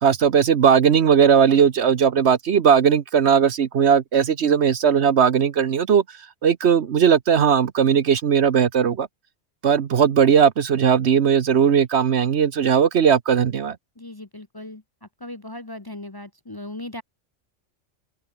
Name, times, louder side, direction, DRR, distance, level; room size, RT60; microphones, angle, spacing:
voice 1, 0.0-6.0 6.4-9.1 9.6-13.8, right 7 dB, 60° right, 1.1 m, -18 dB
voice 2, 14.0-14.8 15.2-17.0, left 1 dB, 20° left, 0.9 m, -37 dB
open air
omnidirectional pair, 1.3 m